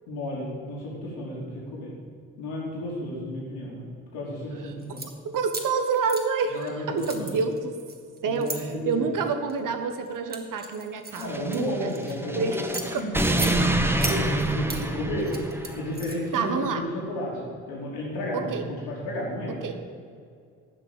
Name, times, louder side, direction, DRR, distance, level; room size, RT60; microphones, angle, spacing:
voice 1, 0.1-1.9 2.4-5.0 6.5-7.3 8.2-9.1 11.2-12.6 12.9-19.7, left 1 dB, 65° left, -4 dB, 3.1 m, -33 dB
sound 1, 4.8-5.1 5.5-6.7 7.0-8.6 9.3-9.6 10.1-12.1 12.5-13.5 14.0-14.8 15.2-16.4, right 3 dB, 20° right, 2.1 m, -36 dB
voice 2, 5.2-7.8 8.2-11.9 12.3-12.6 12.9-13.1 16.3-16.8 18.3-18.6 19.5-19.8, right 5 dB, 50° right, 8 dB, 1.5 m, -28 dB
sound 2, 11.2-15.9, right 1 dB, 5° right, 1.2 m, -27 dB
15.5 x 6.3 x 8.8 m, 2.3 s
figure-of-eight pair, 45°, 42 cm